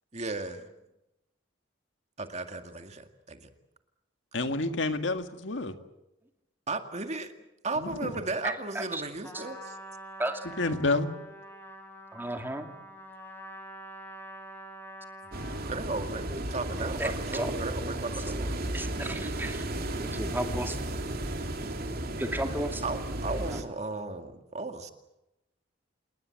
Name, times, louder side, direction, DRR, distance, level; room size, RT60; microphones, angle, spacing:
voice 1, 0.1-0.6 2.2-3.5 6.7-7.3 7.6-9.7 15.6-18.6 22.8-24.9, right 3 dB, 35° right, 6 dB, 2.1 m, -35 dB
voice 2, 4.3-5.7 7.8-8.1 10.6-11.1, left 2 dB, 70° left, 7 dB, 2.0 m, -29 dB
voice 3, 8.4-9.0 9.3-9.4 10.2-10.4 12.1-12.7 16.3-16.4 17.0-17.5 18.7-19.7 20.0-20.8 22.2-22.8 23.3-23.6, right 1 dB, 10° right, 5 dB, 2.6 m, -34 dB
Trumpet, 9.2-15.8, equal, 10° left, 5.0 m, -46 dB
sound 1, 15.3-23.6, right 1 dB, 50° right, 3.0 m, -34 dB
28.5 x 19.5 x 7.7 m, 0.92 s
head